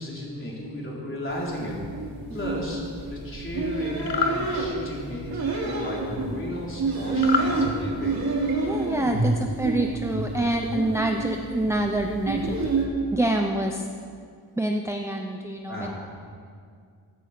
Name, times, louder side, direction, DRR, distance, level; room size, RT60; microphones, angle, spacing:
voice 1, 0.0-1.7 2.3-2.8 3.1-8.1 8.6-8.9 15.7-15.9, left 1 dB, 30° left, -4 dB, 3.9 m, -34 dB
sound 1, 1.3-12.8, right 3 dB, 60° right, 3.1 m, -28 dB
sound 2, 4.0-4.4 7.2-7.5, left 6 dB, 85° left, 1.2 m, -25 dB
voice 2, 8.6-12.6 13.1-13.8 14.6-15.9, right 1 dB, 5° right, 3 dB, 0.7 m, -26 dB
15.0 x 14.0 x 6.0 m, 2.1 s
wide cardioid pair, 150°, 41 cm